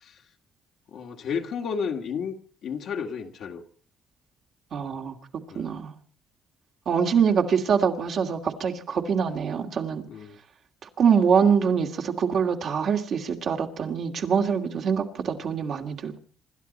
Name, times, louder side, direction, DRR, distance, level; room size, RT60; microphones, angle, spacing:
voice 1, 0.9-2.3 2.6-3.6 5.5-5.7 10.1-10.4, left 6 dB, 70° left, 3 dB, 2.3 m, -32 dB
voice 2, 4.7-5.2 5.5-5.9 6.9-10.0 11.0-16.2, right 6 dB, 65° right, 2 dB, 2.6 m, -24 dB
27.0 x 12.5 x 4.3 m, 0.42 s
supercardioid pair, 60°, 0 cm